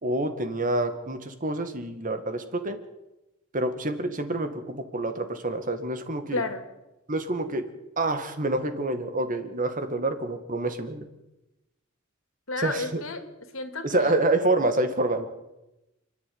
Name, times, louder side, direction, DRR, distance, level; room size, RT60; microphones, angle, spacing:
voice 1, 0.0-2.8 3.5-6.4 7.1-7.6 8.0-11.1 12.6-13.0 13.8-15.3, right 2 dB, 40° right, 8 dB, 2.1 m, -27 dB
voice 2, 6.3-6.7 12.5-13.2 13.5-14.2, left 3 dB, 85° left, 8 dB, 2.7 m, -31 dB
29.0 x 10.5 x 9.6 m, 0.98 s
head